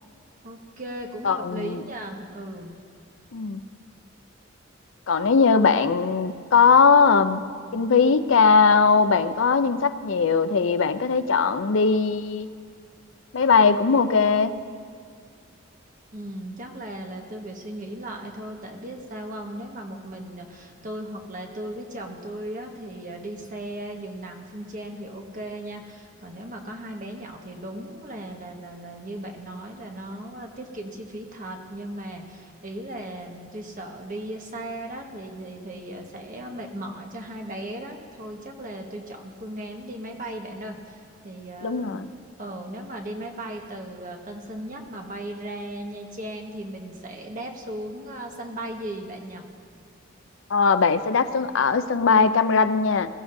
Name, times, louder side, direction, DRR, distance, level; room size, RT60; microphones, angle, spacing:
voice 1, 0.4-2.8 16.1-41.9 42.4-49.4, right 1 dB, 40° right, 1 dB, 1.4 m, -37 dB
voice 2, 1.2-1.8 3.3-3.6 5.1-7.4 7.7-12.5 13.3-14.5 41.6-42.1 50.5-53.1, left 5 dB, 70° left, 11 dB, 0.5 m, -20 dB
21.0 x 14.5 x 2.7 m, 2.2 s
head